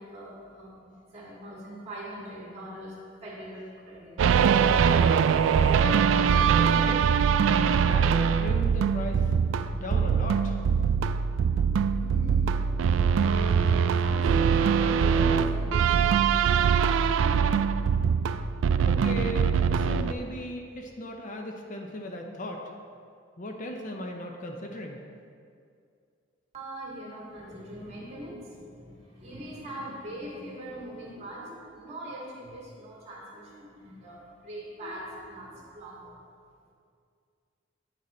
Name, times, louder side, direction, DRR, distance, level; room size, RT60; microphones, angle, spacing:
voice 1, 0.0-4.2 11.3-11.4 11.9-17.7 26.5-36.2, right 1 dB, 35° right, -4 dB, 2.1 m, -42 dB
sound 1, 4.2-20.1, right 7 dB, 70° right, 0.3 m, -23 dB
voice 2, 5.8-7.1 7.8-9.2 9.7-10.6 18.9-22.6 23.4-25.0, equal, 40° left, 2 dB, 0.6 m, -37 dB
9.1 x 6.5 x 4.2 m, 2.3 s
head